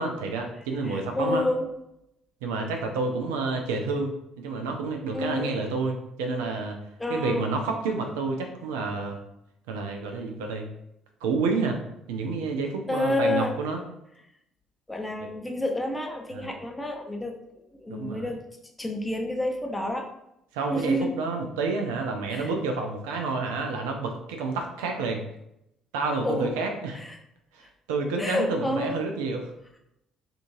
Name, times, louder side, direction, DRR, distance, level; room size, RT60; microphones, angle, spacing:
voice 1, 0.0-1.4 2.4-6.8 7.1-9.2 9.7-10.7 11.2-11.8 12.1-13.8 16.3-16.5 17.9-18.3 20.5-25.2 25.9-27.0 27.5-29.5, right 3 dB, 75° right, 3 dB, 0.4 m, -29 dB
voice 2, 0.8-1.7 5.1-5.5 7.0-7.5 12.9-13.5 14.9-18.4 18.8-20.1 20.7-21.1 22.3-22.5 26.2-26.5 26.9-27.2 28.2-29.0, left 1 dB, 10° left, 2 dB, 0.6 m, -29 dB
3.7 x 2.4 x 2.6 m, 0.82 s
figure-of-eight pair, 50°, 0 cm